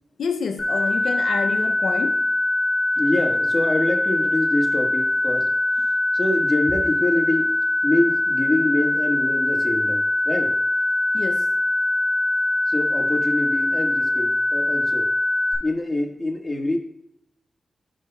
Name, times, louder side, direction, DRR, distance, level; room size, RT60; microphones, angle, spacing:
voice 1, 0.2-2.3 11.1-11.5, left 5 dB, 80° left, 0.4 m, -28 dB
sound 1, 0.6-15.5, left 2 dB, 45° left, 2.1 m, -22 dB
voice 2, 3.0-5.5 6.1-7.5 7.8-10.6 12.7-15.1 15.6-16.8, left 1 dB, 25° left, 1.5 m, -25 dB
11.0 x 5.5 x 2.3 m
cardioid pair, 55°, 0 cm